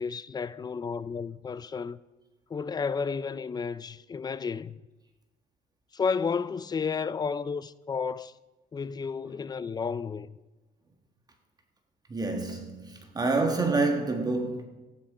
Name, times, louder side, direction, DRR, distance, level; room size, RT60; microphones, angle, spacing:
voice 1, 0.0-2.0 2.5-4.7 5.9-8.3 8.7-10.4, left 5 dB, 25° left, 0.4 m, -32 dB
voice 2, 12.1-14.6, right 3 dB, 25° right, 1.5 m, -27 dB
15.0 x 10.0 x 5.0 m
cardioid pair, 110°, 17 cm